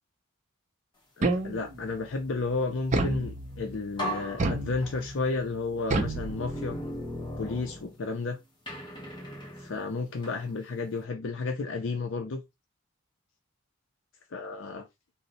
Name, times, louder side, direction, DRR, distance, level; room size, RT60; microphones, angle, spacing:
voice 1, 1.2-6.8 7.4-8.4 9.6-12.4 14.3-14.9, left 3 dB, 65° left, 0.5 m, -32 dB
sound 1, 1.2-1.9 2.9-3.8 4.4-5.2 5.9-6.9, right 2 dB, 35° right, 0.5 m, -30 dB
sound 2, 3.4-3.5 4.0-5.3 5.9-8.2 8.7-10.5, equal, 20° left, 0.9 m, -38 dB
2.7 x 2.1 x 4.0 m
head